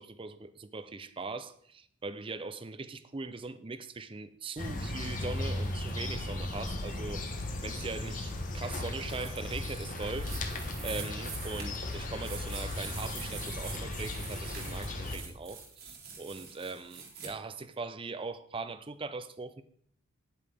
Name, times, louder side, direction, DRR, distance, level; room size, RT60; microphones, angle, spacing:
voice 1, 0.0-10.5 10.8-19.6, right 3 dB, 25° right, 0.4 m, -40 dB
sound 1, 4.6-15.2, left 2 dB, 40° left, 1.0 m, -36 dB
sound 2, 9.1-17.3, right 5 dB, 45° right, 1.9 m, -45 dB
9.6 x 8.5 x 3.4 m
head